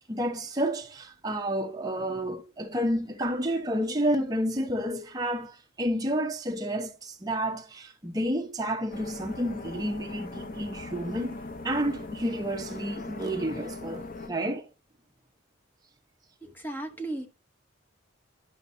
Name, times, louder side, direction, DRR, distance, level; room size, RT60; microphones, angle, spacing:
voice 1, 0.1-11.4 11.6-14.7, equal, 20° right, 0.9 m, -30 dB
sound 1, 8.9-14.3, left 2 dB, 45° left, 0.6 m, -40 dB
voice 2, 16.4-17.3, right 2 dB, 10° left, 0.8 m, -35 dB
11.5 x 5.2 x 2.7 m
head